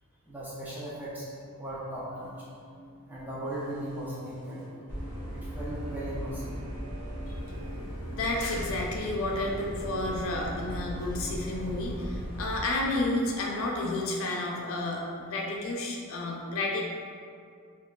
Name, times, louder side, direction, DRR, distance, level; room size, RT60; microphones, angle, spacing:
voice 1, 0.3-1.3 1.6-2.3 3.1-4.7 5.3-6.4 11.6-11.7, right 1 dB, 10° right, -7 dB, 0.4 m, -37 dB
sound 1, 0.9-12.2, right 1 dB, 35° right, 0.9 m, -48 dB
sound 2, 3.7-4.0 4.4-4.5 4.9-12.6, equal, 10° left, 0.9 m, -38 dB
voice 2, 8.1-16.9, left 2 dB, 65° left, -1 dB, 0.4 m, -31 dB
3.1 x 2.3 x 2.2 m, 2.2 s
head